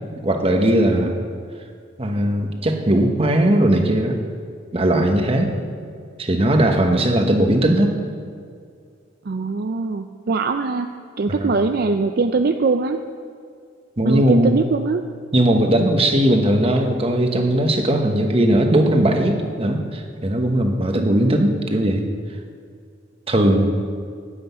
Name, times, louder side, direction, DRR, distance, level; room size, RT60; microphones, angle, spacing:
voice 1, 0.2-1.2 2.0-4.2 4.7-5.5 6.2-7.9 11.3-11.5 14.0-14.6 15.3-22.0 23.3-23.7, right 1 dB, 30° right, 3 dB, 1.2 m, -18 dB
voice 2, 9.2-13.0 14.0-15.0 20.9-21.2, right 4 dB, 55° right, 6 dB, 0.5 m, -22 dB
9.8 x 7.8 x 9.3 m, 2.2 s
head